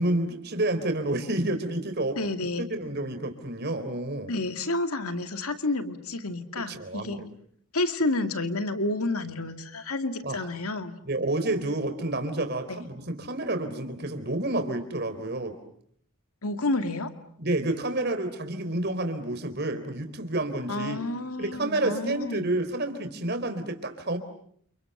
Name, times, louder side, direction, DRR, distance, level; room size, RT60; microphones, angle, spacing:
voice 1, 0.0-2.2 2.6-4.3 6.6-7.3 10.2-10.4 11.0-15.6 17.4-21.0 21.4-24.2, right 2 dB, 50° right, 7 dB, 3.9 m, -29 dB
voice 2, 2.2-2.6 4.3-7.2 7.7-10.9 12.7-12.8 16.4-17.1 20.7-22.5, left 2 dB, 85° left, 8 dB, 2.4 m, -30 dB
29.5 x 29.0 x 6.8 m, 0.64 s
head